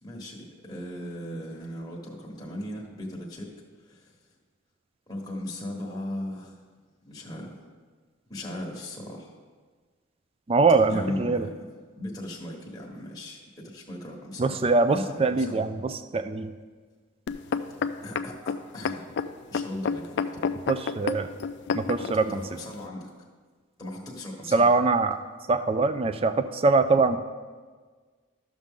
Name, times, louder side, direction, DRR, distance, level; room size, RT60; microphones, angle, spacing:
voice 1, 0.0-3.5 3.8-4.2 5.1-6.6 7.0-7.6 8.3-9.3 10.9-11.6 11.9-14.6 14.9-15.6 18.0-19.1 19.5-20.5 22.0-23.1 23.8-24.7, left 1 dB, 20° left, -4 dB, 1.2 m, -38 dB
voice 2, 10.5-11.5 14.4-16.5 20.7-21.3 21.7-22.4 24.5-25.2 25.5-27.2, right 3 dB, 25° right, 10 dB, 0.3 m, -23 dB
sound 1, 17.3-22.2 22.8-22.9, left 5 dB, 55° left, 0.3 m, -29 dB
13.0 x 6.2 x 3.7 m, 1.5 s
head